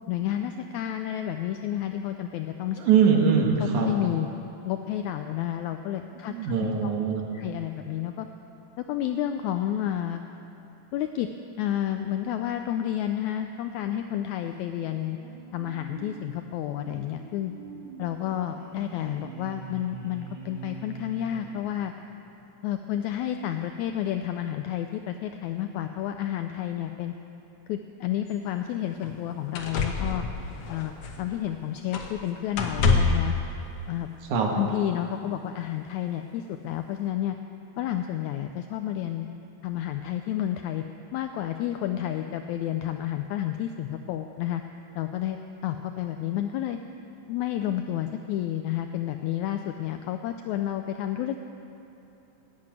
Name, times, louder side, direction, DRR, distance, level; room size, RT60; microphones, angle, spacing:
voice 1, 0.1-2.8 3.6-4.3 4.7-6.9 7.3-8.3 8.8-10.2 10.9-11.3 11.6-15.2 15.5-17.5 18.0-21.9 22.6-27.1 27.7-30.3 30.7-30.9 31.2-33.3 33.9-34.1 34.6-37.4 37.8-39.3 39.6-40.8 41.1-44.6 45.0-45.4 45.6-46.8 47.3-51.4, left 11 dB, 80° left, 7 dB, 1.7 m, -30 dB
voice 2, 2.8-3.9 6.2-7.2 34.3-34.5, right 6 dB, 65° right, 1 dB, 2.6 m, -22 dB
sound 1, 14.6-22.2, right 4 dB, 40° right, 2.4 m, -44 dB
sound 2, 28.3-28.4 29.0-29.1 29.5-31.5 31.9-32.2 32.5-33.3 34.4-34.5, left 4 dB, 60° left, 2.0 m, -26 dB
13.5 x 9.5 x 9.0 m, 2.8 s
omnidirectional pair, 3.8 m